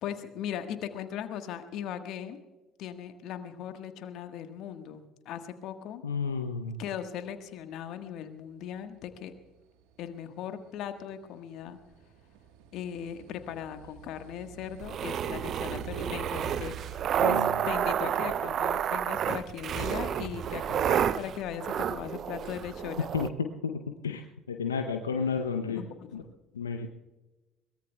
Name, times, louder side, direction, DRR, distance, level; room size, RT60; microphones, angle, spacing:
voice 1, 0.0-2.4 2.8-6.0 6.8-9.3 10.0-11.8 12.7-23.1 25.7-26.3, left 9 dB, 60° left, 8 dB, 1.4 m, -38 dB
voice 2, 6.0-6.8 17.2-17.5 23.1-25.8 26.1-26.2 26.5-26.9, left 5 dB, 85° left, 6 dB, 0.7 m, -32 dB
sound 1, 8.7-20.0, right 8 dB, 70° right, 1.3 m, -47 dB
sound 2, 14.8-23.3, right 9 dB, 50° right, 0.5 m, -30 dB
22.5 x 20.0 x 2.3 m, 1.1 s
hypercardioid pair, 55°, 0 cm